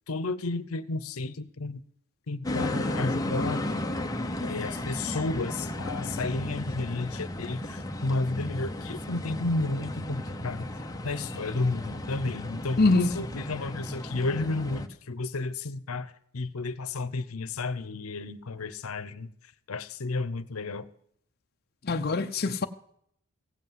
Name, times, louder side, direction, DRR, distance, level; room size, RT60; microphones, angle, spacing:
voice 1, 0.1-1.8 2.3-3.7 4.4-10.7 11.0-19.3 19.7-20.8, left 3 dB, 90° left, 0.8 m, -32 dB
sound 1, 2.4-14.9, left 1 dB, 15° left, 0.9 m, -34 dB
voice 2, 12.8-13.1 21.9-22.7, left 3 dB, 45° left, 0.7 m, -23 dB
16.0 x 8.3 x 7.4 m
head